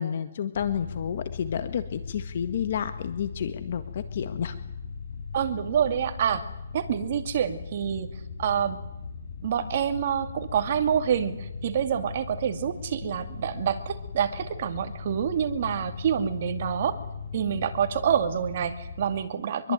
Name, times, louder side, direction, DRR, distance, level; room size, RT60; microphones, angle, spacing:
voice 1, 0.0-4.6 19.6-19.7, left 8 dB, 45° left, 11 dB, 1.8 m, -30 dB
sound 1, 0.5-19.3, left 5 dB, 65° left, 7.3 m, -39 dB
voice 2, 5.3-6.4 6.7-8.1 8.4-8.8 9.4-17.0 17.3-19.7, right 8 dB, 40° right, 8 dB, 2.6 m, -27 dB
25.0 x 22.5 x 9.5 m, 0.85 s
hypercardioid pair, 170°, 0 cm